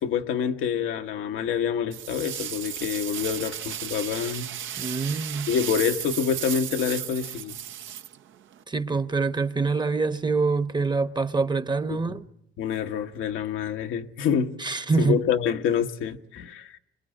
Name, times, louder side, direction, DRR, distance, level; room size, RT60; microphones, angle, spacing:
voice 1, 0.0-4.5 5.1-5.2 5.5-7.6 11.9-12.2 12.6-14.5 15.0-16.8, left 8 dB, 90° left, 1.2 m, -27 dB
sound 1, 1.9-8.6, right 10 dB, 80° right, 1.0 m, -35 dB
voice 2, 4.8-5.5 8.7-12.2 14.6-15.2, right 4 dB, 20° right, 0.9 m, -25 dB
25.5 x 21.5 x 8.9 m
cardioid pair, 90°, 20 cm